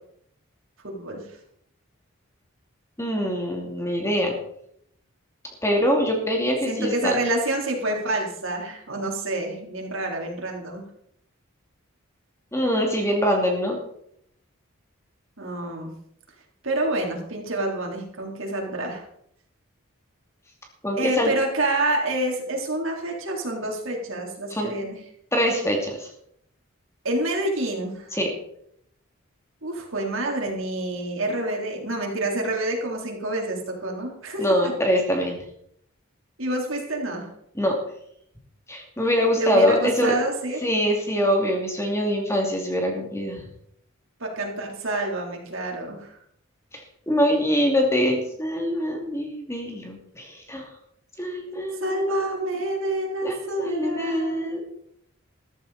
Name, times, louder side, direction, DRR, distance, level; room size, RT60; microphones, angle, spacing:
voice 1, 0.8-1.3 6.7-10.8 15.4-15.9 16.6-19.0 20.9-25.0 27.0-28.1 29.6-34.7 36.4-37.3 39.4-40.7 44.2-46.1 51.8-54.5, right 1 dB, 65° right, 0 dB, 3.8 m, -27 dB
voice 2, 3.0-4.4 5.6-7.2 12.5-13.8 20.8-21.3 24.5-24.7 25.3-26.1 28.1-28.3 34.4-35.4 37.6-37.8 38.7-40.1 40.6-43.4 46.7-50.7 51.2-51.9 53.2-54.6, equal, 15° left, 1 dB, 2.6 m, -24 dB
14.0 x 14.0 x 4.2 m, 0.71 s
head